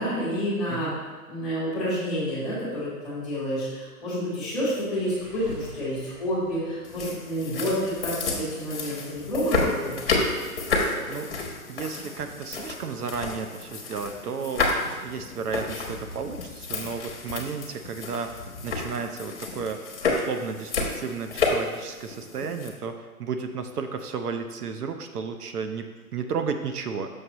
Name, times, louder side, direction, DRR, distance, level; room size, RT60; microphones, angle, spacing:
voice 1, 0.0-10.0, equal, ahead, -12 dB, 1.7 m, -29 dB
sound 1, 4.4-8.0, equal, 40° right, 1.2 m, -46 dB
sound 2, 6.8-22.7, left 3 dB, 40° left, 1.1 m, -31 dB
voice 2, 10.9-11.3 11.7-14.7 15.0-19.8 20.1-22.9 23.2-27.1, right 5 dB, 80° right, 7 dB, 0.8 m, -33 dB
6.5 x 6.5 x 3.0 m, 1.3 s
hypercardioid pair, 175°, 45 cm